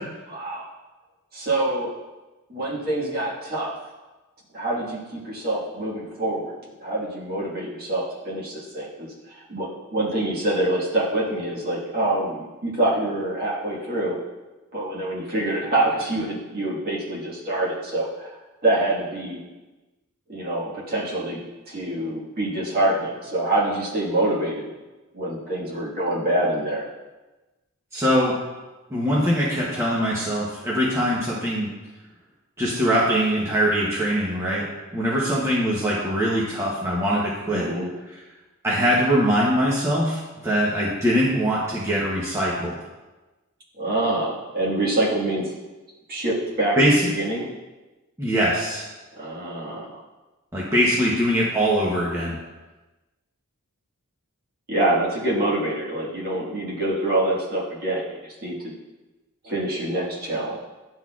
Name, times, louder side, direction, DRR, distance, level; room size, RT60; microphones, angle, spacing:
voice 1, 0.3-0.7 1.3-1.9 2.5-3.7 4.5-6.5 6.8-9.1 9.3-14.2 14.7-18.4 18.6-19.4 20.3-24.7 25.1-26.9 37.5-37.9 43.8-45.5 46.1-47.5 49.1-50.0 54.7-58.7 59.4-60.6, right 1 dB, 45° right, -5 dB, 1.6 m, -26 dB
voice 2, 27.9-28.3 28.9-31.7 32.6-34.6 34.9-37.7 38.6-42.8 46.8-46.9 48.2-48.8 50.5-52.4, equal, 10° right, -7 dB, 0.8 m, -22 dB
10.5 x 4.0 x 2.4 m, 1.1 s
head